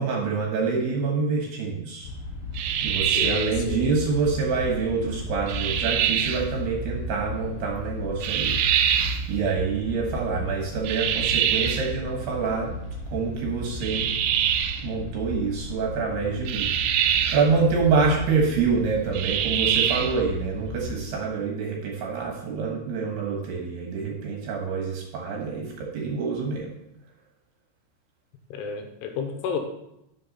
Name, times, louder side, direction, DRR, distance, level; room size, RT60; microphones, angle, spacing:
voice 1, 0.0-2.1 2.8-8.6 9.3-12.7 13.1-14.1 14.8-16.7 17.3-26.7, right 5 dB, 65° right, 0 dB, 2.9 m, -26 dB
sound 1, 2.0-21.0, left 1 dB, 50° left, 4.7 m, -35 dB
sound 2, 2.6-3.6 5.5-6.5 8.2-9.3 10.9-11.9 13.8-14.9 16.5-17.5 19.1-20.2, right 10 dB, 85° right, 2.6 m, -24 dB
voice 2, 3.1-3.9 28.5-29.6, left 6 dB, 80° left, 4 dB, 3.1 m, -31 dB
11.0 x 6.6 x 4.1 m, 0.82 s
omnidirectional pair, 5.9 m